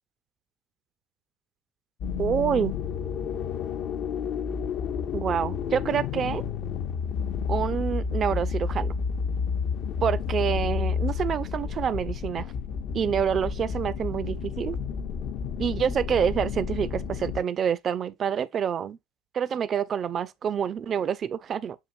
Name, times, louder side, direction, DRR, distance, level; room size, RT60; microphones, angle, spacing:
sound 1, 2.0-17.4, left 6 dB, 60° left, 0.5 m, -30 dB
voice 1, 2.2-2.7 5.1-6.4 7.5-9.0 10.0-12.5 12.9-14.8 15.6-19.0 19.3-21.8, right 8 dB, 40° right, 0.4 m, -27 dB
7.2 x 2.5 x 2.5 m
hypercardioid pair, 80°, 0 cm